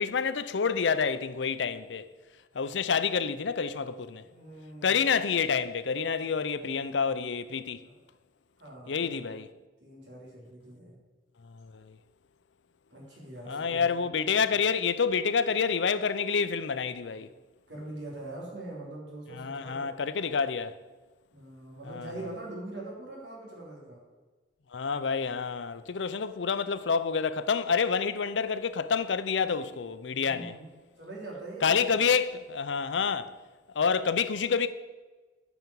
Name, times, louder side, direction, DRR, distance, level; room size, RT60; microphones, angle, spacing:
voice 1, 0.0-2.1 2.5-4.2 4.8-7.8 8.9-9.5 11.4-12.0 13.5-17.3 19.3-20.8 21.9-22.1 24.7-30.5 31.6-33.3 33.8-34.7, left 6 dB, 90° left, 0.6 m, -28 dB
voice 2, 4.2-5.1 6.3-7.1 7.8-7.9 8.6-9.3 9.8-11.0 12.9-14.1 14.5-14.6 17.7-19.9 21.3-24.0 30.1-30.7 31.0-31.9, right 2 dB, 75° right, 3.4 m, -43 dB
9.5 x 6.0 x 7.0 m
head